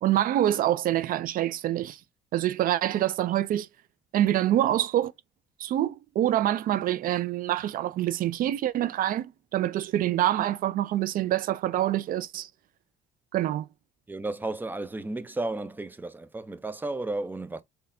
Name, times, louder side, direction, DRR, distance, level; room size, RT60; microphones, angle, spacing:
voice 1, 0.0-2.0 2.3-3.7 4.1-5.1 5.6-12.5 13.3-13.7, right 12 dB, 55° right, 0.4 m, -26 dB
voice 2, 14.1-17.6, right 2 dB, 10° right, 0.6 m, -33 dB
4.0 x 3.3 x 2.6 m
cardioid pair, 110°, 17 cm